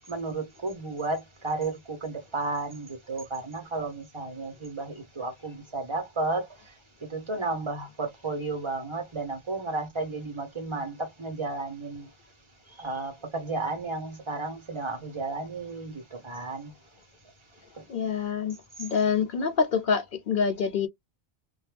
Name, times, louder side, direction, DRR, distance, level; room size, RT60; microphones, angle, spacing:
voice 1, 0.1-6.5 7.1-12.1 12.8-16.7, right 3 dB, 30° right, 1.1 m, -33 dB
voice 2, 17.9-20.9, left 6 dB, 60° left, 0.7 m, -26 dB
2.7 x 2.2 x 3.3 m
omnidirectional pair, 1.0 m